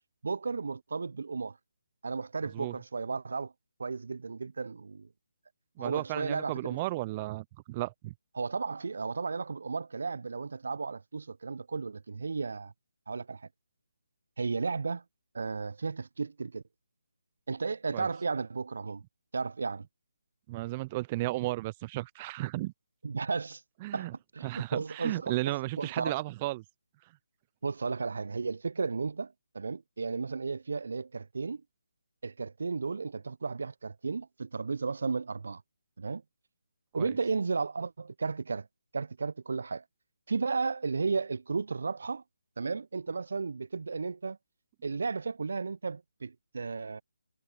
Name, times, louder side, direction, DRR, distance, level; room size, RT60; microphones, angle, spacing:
voice 1, 0.2-1.6 2.0-3.5 3.8-5.1 5.8-6.8 8.4-12.7 13.1-13.5 14.4-15.0 15.3-16.6 17.5-19.0 19.3-19.9 23.0-23.6 23.9-24.1 24.3-26.2 27.6-31.6 32.2-35.6 36.0-36.2 36.9-38.7 38.9-39.8 40.3-42.2 42.6-44.4 44.8-47.0, right 4 dB, 60° right, 0.8 m, -34 dB
voice 2, 5.8-8.1 17.9-18.1 20.5-22.7 23.8-24.1 24.4-26.6 37.0-37.1, right 19 dB, 25° right, 0.7 m, -34 dB
figure-of-eight pair, 150°, 0 cm